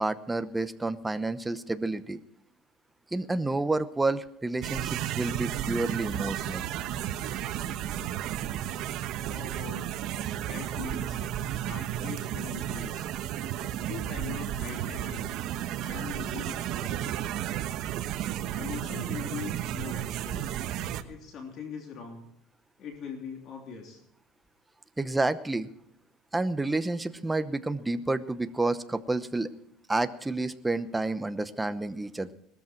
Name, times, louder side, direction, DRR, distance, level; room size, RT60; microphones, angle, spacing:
voice 1, 0.0-2.2 3.1-6.7 25.0-25.7 26.3-29.5 29.9-32.3, right 2 dB, 10° right, 11 dB, 0.9 m, -29 dB
sound 1, 4.6-21.0, right 11 dB, 55° right, 1.2 m, -33 dB
voice 2, 9.3-9.9 10.4-11.2 11.6-13.0 13.9-15.3 15.8-17.0 18.5-20.5 21.0-22.2 22.8-24.0, left 6 dB, 45° left, 2 dB, 3.3 m, -41 dB
19.5 x 13.5 x 4.5 m, 0.72 s
cardioid pair, 135°, 0 cm